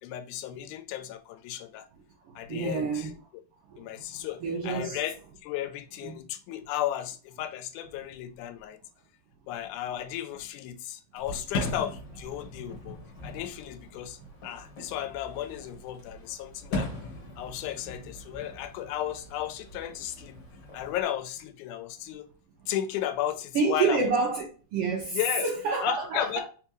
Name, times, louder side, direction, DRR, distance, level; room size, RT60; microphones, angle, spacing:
voice 1, 0.0-1.9 2.4-3.1 3.8-8.8 9.5-16.9 17.4-20.4 20.7-22.3 22.7-24.1 25.1-25.5 25.8-26.4, left 12 dB, 85° left, 2.0 m, -34 dB
voice 2, 2.3-3.1 3.7-5.0 6.0-6.1 23.5-24.5 24.7-26.4, right 4 dB, 75° right, 1.3 m, -29 dB
Fireworks, 11.2-21.0, left 2 dB, 50° left, 1.7 m, -39 dB
4.4 x 3.5 x 3.0 m
omnidirectional pair, 3.4 m